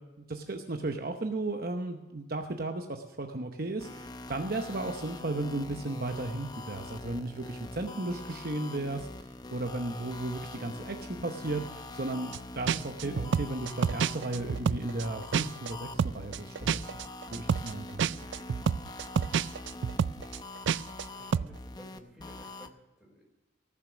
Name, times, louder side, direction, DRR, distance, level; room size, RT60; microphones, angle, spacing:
voice 1, 0.2-17.0 17.3-18.1, right 2 dB, 50° right, 5 dB, 0.9 m, -35 dB
sound 1, 3.8-22.7, left 2 dB, 20° left, 0.6 m, -44 dB
sound 2, 12.3-12.4 12.7-15.7 16.0-21.1 21.3-21.5, right 7 dB, 70° right, 0.3 m, -29 dB
voice 2, 21.1-23.2, equal, ahead, -2 dB, 4.5 m, -53 dB
18.5 x 7.3 x 6.2 m, 1.0 s
head